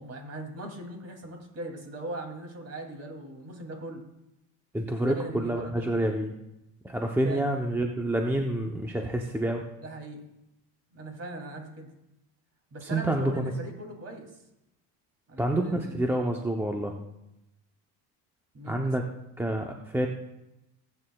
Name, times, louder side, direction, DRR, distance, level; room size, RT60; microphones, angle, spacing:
voice 1, 0.0-4.0 5.0-6.0 7.2-7.5 9.8-10.2 10.9-11.9 12.7-14.3 15.3-16.0 18.5-18.9, right 1 dB, 30° right, 2 dB, 2.7 m, -39 dB
voice 2, 4.7-6.3 6.8-9.7 12.8-13.5 15.4-16.9 18.7-19.1 19.4-20.1, right 1 dB, 5° right, 2 dB, 0.6 m, -28 dB
18.0 x 8.9 x 2.3 m, 0.89 s
cardioid pair, 120°, 48 cm